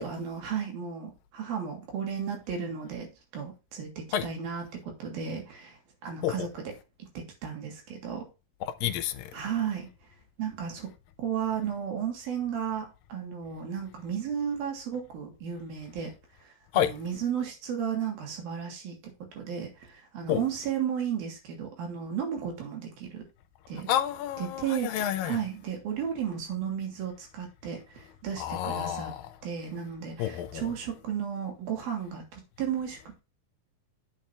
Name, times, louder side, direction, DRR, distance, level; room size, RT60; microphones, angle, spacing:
voice 1, 0.0-6.7 7.1-8.3 9.3-9.9 10.4-10.9 11.2-16.1 16.4-19.0 19.3-23.2 23.7-23.9 24.4-29.1 29.4-33.2, right 8 dB, 90° right, 4.7 m, -34 dB
voice 2, 8.8-9.2 16.7-16.9 20.3-20.4 23.9-25.4 28.4-29.3 30.2-30.7, left 11 dB, 85° left, 2.5 m, -29 dB
9.3 x 6.7 x 3.3 m
omnidirectional pair, 4.1 m